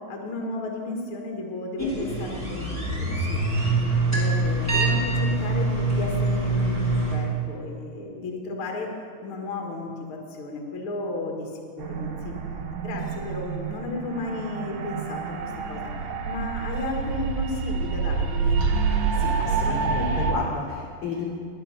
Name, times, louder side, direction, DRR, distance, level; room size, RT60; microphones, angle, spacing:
voice 1, 0.1-3.4 4.1-8.9 9.2-11.5 11.8-12.3 12.8-15.9 16.2-18.8, left 2 dB, 65° left, 1 dB, 1.3 m, -34 dB
sound 1, 1.8-7.1, right 2 dB, 5° left, 2.5 m, -24 dB
sound 2, 11.8-20.3, right 5 dB, 85° right, 3.5 m, -27 dB
voice 2, 19.2-21.3, left 4 dB, 85° left, -1 dB, 1.7 m, -31 dB
12.0 x 10.0 x 5.9 m, 2.2 s
omnidirectional pair, 5.2 m